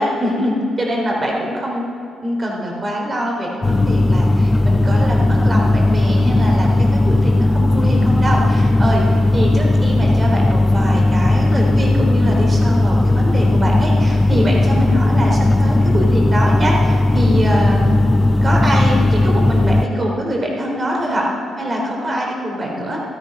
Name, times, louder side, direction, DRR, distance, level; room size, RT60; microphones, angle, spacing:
voice 1, 0.0-1.8 2.2-9.0 9.3-17.9 18.4-21.3 21.6-23.0, equal, 30° right, -1 dB, 3.6 m, -23 dB
sound 1, 3.6-19.9, left 2 dB, 20° left, 0.5 m, -15 dB
14.5 x 12.5 x 5.4 m, 2.6 s
cardioid pair, 90°, 0 cm